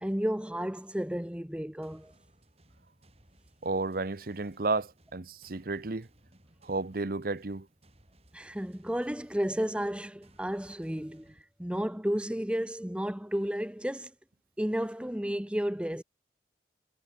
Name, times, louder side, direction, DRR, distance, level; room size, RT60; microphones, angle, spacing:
voice 1, 0.0-2.1 8.3-11.3 11.6-14.1 14.6-16.0, equal, 5° right, 0.8 m, -32 dB
sound 1, 1.8-11.4, right 1 dB, 35° right, 6.3 m, -62 dB
voice 2, 3.6-6.1 6.6-7.7, right 3 dB, 55° right, 0.9 m, -32 dB
head